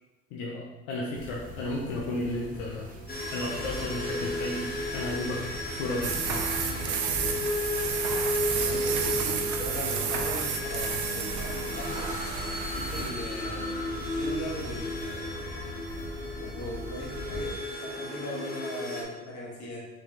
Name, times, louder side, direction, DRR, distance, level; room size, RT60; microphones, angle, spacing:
voice 1, 0.3-2.9 3.3-6.5, left 2 dB, 85° left, -3 dB, 0.7 m, -33 dB
sound 1, 1.1-17.5, equal, 25° right, 0.9 m, -41 dB
sound 2, 3.1-19.0, left 1 dB, 25° left, 1.1 m, -34 dB
sound 3, 6.0-13.1, right 6 dB, 55° right, 0.6 m, -31 dB
voice 2, 8.5-12.3 12.7-15.5 16.4-19.9, left 1 dB, 55° left, -3 dB, 1.5 m, -39 dB
3.7 x 3.5 x 3.2 m, 1.1 s
supercardioid pair, 80°, 35 cm